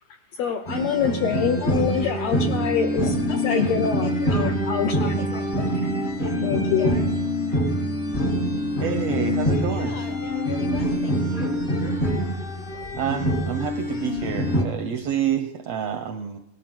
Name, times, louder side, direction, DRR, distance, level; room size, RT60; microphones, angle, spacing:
voice 1, 0.3-3.2 3.4-5.2 6.4-6.9, left 7 dB, 75° left, 5 dB, 1.5 m, -25 dB
sound 1, 0.7-14.6, equal, 40° left, 0.7 m, -25 dB
voice 2, 3.3-3.7 4.0-4.4 5.0-5.5 6.2-7.0 9.7-11.5, left 3 dB, 60° left, 2 dB, 1.4 m, -37 dB
voice 3, 8.8-10.0 13.0-16.4, right 8 dB, 75° right, 7 dB, 1.5 m, -28 dB
18.5 x 12.5 x 4.4 m, 0.89 s
omnidirectional pair, 3.7 m